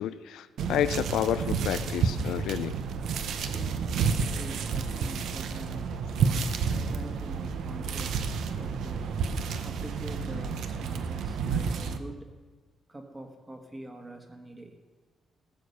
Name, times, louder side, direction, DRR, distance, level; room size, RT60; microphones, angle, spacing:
voice 1, 0.0-2.7, left 10 dB, 80° left, 13 dB, 0.5 m, -30 dB
sound 1, 0.6-12.0, right 5 dB, 65° right, 0.8 m, -30 dB
voice 2, 3.5-12.3 12.9-14.8, right 1 dB, 15° right, 5 dB, 1.4 m, -45 dB
15.5 x 7.0 x 6.6 m, 1.3 s
cardioid pair, 160°, 0 cm